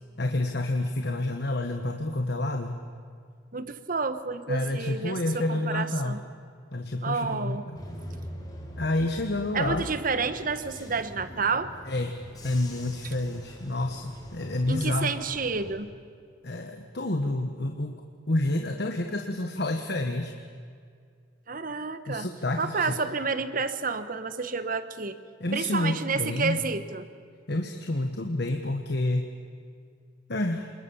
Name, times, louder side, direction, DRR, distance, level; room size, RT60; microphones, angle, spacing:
voice 1, 0.2-2.8 4.5-6.2 6.7-7.8 8.8-9.9 11.9-15.1 16.4-18.0 18.3-20.3 22.1-22.9 25.4-26.6 27.5-29.2 30.3-30.7, left 2 dB, 60° left, 5 dB, 1.4 m, -29 dB
voice 2, 3.5-6.2 7.0-7.7 9.5-11.7 14.7-15.9 21.5-22.3 22.6-25.2 25.5-27.0, right 4 dB, 45° right, 12 dB, 1.2 m, -30 dB
Bus / Engine, 7.7-15.7, equal, 20° left, 4.2 m, -43 dB
28.0 x 21.0 x 7.2 m, 2.2 s
head